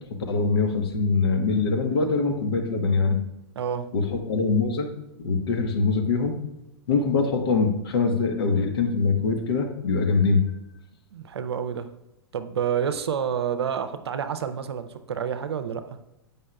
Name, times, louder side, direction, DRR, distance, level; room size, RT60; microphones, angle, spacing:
voice 1, 0.1-3.2 3.9-4.9 5.2-6.3 6.9-10.4, left 4 dB, 65° left, 5 dB, 1.0 m, -23 dB
voice 2, 3.6-3.9 11.1-11.9 12.3-16.0, right 8 dB, 70° right, 10 dB, 0.6 m, -29 dB
8.4 x 5.4 x 2.2 m, 0.88 s
figure-of-eight pair, 105°, 14 cm